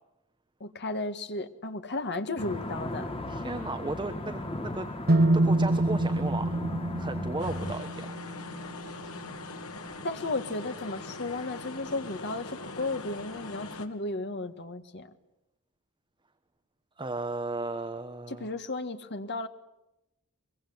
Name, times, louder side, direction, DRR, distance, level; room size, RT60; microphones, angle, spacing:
voice 1, 0.6-3.1 10.0-15.1 18.3-19.5, left 2 dB, 50° left, 8 dB, 1.7 m, -34 dB
sound 1, 2.4-7.7, left 1 dB, 25° left, 1.9 m, -37 dB
voice 2, 3.3-4.9 5.3-6.6 7.0-8.2 17.0-18.5, right 2 dB, 20° right, 8 dB, 1.2 m, -35 dB
sound 2, 5.1-9.0, right 1 dB, 45° right, 1.0 m, -26 dB
sound 3, 7.4-13.9, left 3 dB, 75° left, 2.6 m, -42 dB
24.0 x 23.0 x 9.5 m, 0.92 s
head